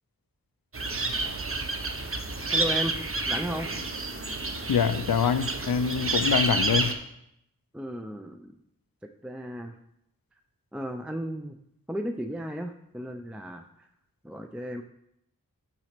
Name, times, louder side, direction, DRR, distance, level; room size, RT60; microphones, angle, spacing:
sound 1, 0.7-6.9, right 3 dB, 40° right, 0.8 m, -29 dB
voice 1, 2.5-3.0 3.3-3.7 7.7-8.5 9.2-9.8 10.7-11.6 11.9-13.9 14.2-14.8, equal, 5° right, 6 dB, 0.4 m, -34 dB
voice 2, 4.7-7.0, left 7 dB, 85° left, 12 dB, 0.5 m, -25 dB
5.9 x 4.0 x 5.9 m, 0.78 s
wide cardioid pair, 45°, 34 cm